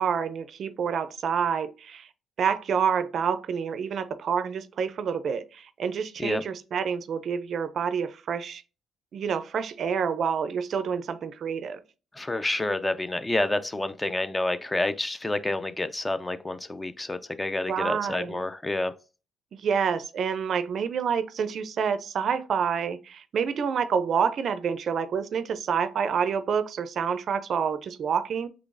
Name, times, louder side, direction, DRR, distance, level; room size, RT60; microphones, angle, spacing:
voice 1, 0.0-2.1 2.4-8.6 9.1-11.8 17.7-18.4 19.5-28.5, right 7 dB, 60° right, 0.4 m, -28 dB
voice 2, 12.2-18.9, left 2 dB, 15° left, 0.3 m, -29 dB
3.7 x 3.3 x 2.5 m
cardioid pair, 90°, 0 cm